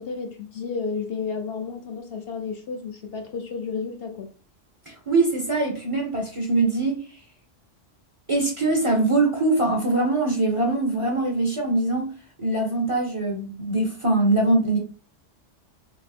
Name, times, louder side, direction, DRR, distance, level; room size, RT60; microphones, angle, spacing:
voice 1, 0.0-4.3, left 5 dB, 60° left, 0.8 m, -32 dB
voice 2, 4.9-7.2 8.3-14.8, right 2 dB, 30° right, 0.7 m, -23 dB
3.0 x 2.8 x 4.2 m
omnidirectional pair, 1.2 m